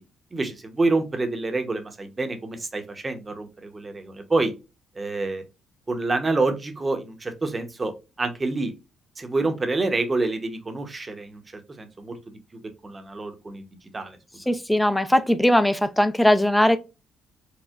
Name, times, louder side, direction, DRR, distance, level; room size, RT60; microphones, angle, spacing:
voice 1, 0.3-4.5 4.9-5.4 5.9-7.9 8.2-8.7 9.2-11.4 11.8-12.4 12.8-13.7 13.9-14.2 14.4-14.5, right 3 dB, 25° right, 0.8 m, -27 dB
voice 2, 14.5-16.8, left 1 dB, 5° left, 0.4 m, -19 dB
4.3 x 2.1 x 2.3 m
cardioid pair, 90°, 0 cm